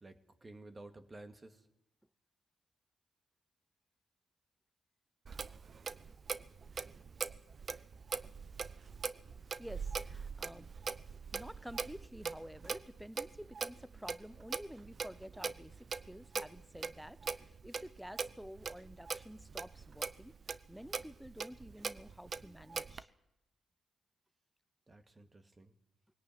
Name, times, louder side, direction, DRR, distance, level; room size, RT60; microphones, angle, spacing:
voice 1, 0.0-1.7 24.9-25.7, right 2 dB, 30° right, 2.2 m, -53 dB
Clock, 5.3-23.0, right 5 dB, 50° right, 0.8 m, -42 dB
voice 2, 9.6-10.7 11.3-20.4 20.7-23.1, equal, 5° right, 0.8 m, -50 dB
21.0 x 17.5 x 9.3 m
supercardioid pair, 55°, 0 cm